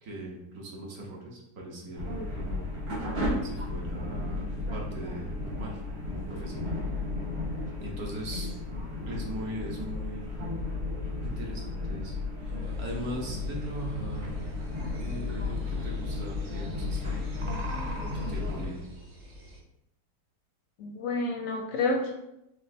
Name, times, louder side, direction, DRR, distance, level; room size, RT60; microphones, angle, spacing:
voice 1, 0.0-2.7 3.4-5.8 6.1-6.8 7.8-8.5 9.1-10.4 11.2-14.3 15.0-17.3 18.1-18.9, right 1 dB, 60° right, -1 dB, 1.3 m, -40 dB
sound 1, 2.0-18.7, left 2 dB, 85° right, 1.9 m, -34 dB
sound 2, 12.6-19.6, right 1 dB, 45° right, 0.7 m, -46 dB
voice 2, 20.8-22.1, left 3 dB, 70° left, 2 dB, 0.8 m, -29 dB
5.2 x 3.4 x 2.6 m, 0.85 s
omnidirectional pair, 1.8 m